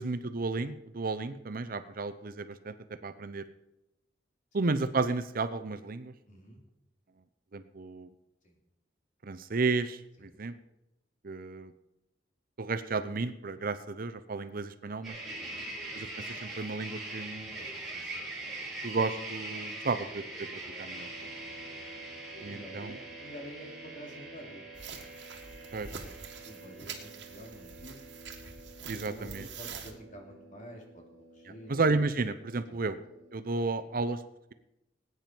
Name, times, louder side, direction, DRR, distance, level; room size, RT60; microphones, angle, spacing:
voice 1, 0.0-2.7 3.0-3.4 4.5-6.1 7.5-8.1 9.2-10.5 11.2-11.7 12.6-15.2 15.9-17.5 18.8-20.5 20.8-21.3 22.4-23.0 25.7-25.9 28.9-29.5 31.7-33.0 33.3-34.2, right 3 dB, 50° right, 12 dB, 0.7 m, -32 dB
voice 2, 6.3-6.6 8.4-8.6 10.2-10.4 15.4-15.7 17.6-18.3 21.6-21.8 22.3-24.7 26.4-28.2 28.8-31.0 31.3-31.7 32.7-32.8, equal, 45° left, 1 dB, 2.9 m, -49 dB
sound 1, 15.0-33.4, right 2 dB, ahead, 4.5 m, -44 dB
sound 2, 24.7-29.9, right 6 dB, 75° right, 1.8 m, -45 dB
19.0 x 9.3 x 4.5 m, 0.90 s
head